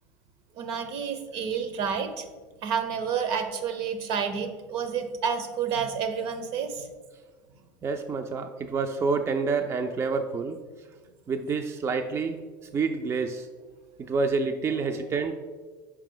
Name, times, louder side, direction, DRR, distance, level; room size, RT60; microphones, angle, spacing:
voice 1, 0.5-2.3 2.6-6.9, right 6 dB, 65° right, 8 dB, 0.7 m, -29 dB
voice 2, 7.8-10.6 11.3-12.4 12.7-13.5 14.0-15.3, right 4 dB, 25° right, 6 dB, 0.4 m, -28 dB
5.7 x 4.4 x 3.7 m, 1.4 s
hypercardioid pair, 90°, 10 cm